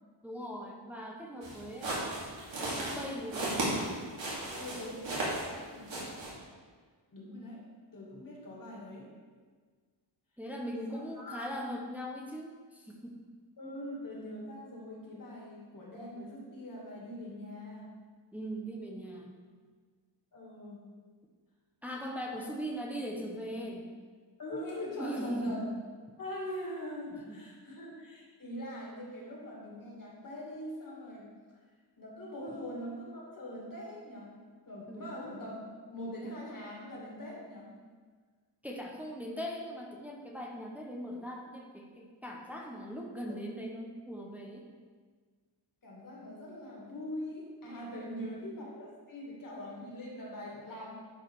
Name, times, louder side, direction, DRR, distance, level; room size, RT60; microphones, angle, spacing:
voice 1, 0.2-2.1 2.6-3.8 10.4-13.2 18.3-19.3 21.8-23.9 25.0-25.7 27.1-27.4 32.5-32.6 34.9-35.1 38.6-44.7 48.0-48.3, equal, 5° right, -1 dB, 0.9 m, -40 dB
sound 1, 1.4-5.6 5.9-6.3, right 1 dB, 85° right, 2.8 m, -35 dB
voice 2, 4.5-6.1 7.1-7.6 7.9-9.1 10.9-11.5 13.6-17.9 20.3-20.8 22.3-22.5 24.4-25.6 26.2-31.3 32.0-34.3 34.7-37.7 45.8-50.9, left 1 dB, 50° left, -3 dB, 2.4 m, -42 dB
11.0 x 4.8 x 4.7 m, 1.5 s
wide cardioid pair, 135°, 44 cm